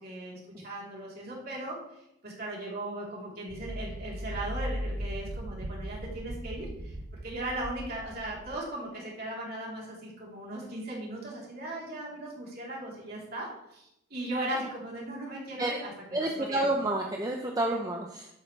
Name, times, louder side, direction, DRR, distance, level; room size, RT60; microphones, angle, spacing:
voice 1, 0.0-1.8 2.2-6.9 7.2-16.7, right 1 dB, 50° right, -4 dB, 3.6 m, -38 dB
sound 1, 3.5-8.6, equal, 75° right, 0.9 m, -38 dB
voice 2, 16.1-18.3, right 1 dB, 20° right, 1 dB, 0.7 m, -29 dB
11.5 x 8.6 x 3.3 m, 0.83 s
head